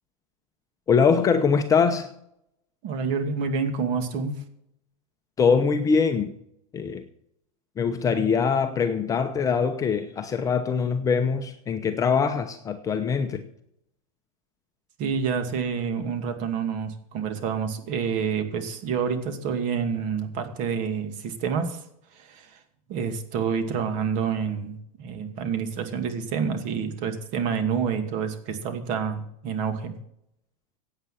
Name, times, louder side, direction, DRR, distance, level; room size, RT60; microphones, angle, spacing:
voice 1, 0.9-2.1 5.4-6.3 6.7-7.0 7.8-13.4, left 5 dB, 15° left, 0.9 m, -23 dB
voice 2, 2.8-4.4 15.0-21.8 22.1-22.6 22.9-29.9, right 6 dB, 40° right, 2.5 m, -28 dB
16.5 x 8.9 x 5.8 m
supercardioid pair, 155°, 19 cm